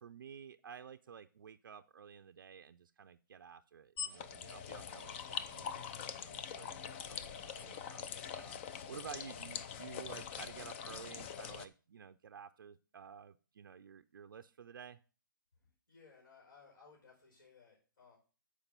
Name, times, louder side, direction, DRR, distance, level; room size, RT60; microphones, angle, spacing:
voice 1, 0.0-8.6 8.9-15.0, right 7 dB, 75° right, 8 dB, 0.5 m, -52 dB
sound 1, 4.0-11.7, left 8 dB, 35° left, 0.6 m, -44 dB
voice 2, 15.6-18.2, left 5 dB, 70° left, -1 dB, 5.2 m, -62 dB
7.2 x 4.9 x 6.7 m, 0.36 s
hypercardioid pair, 150°, 11 cm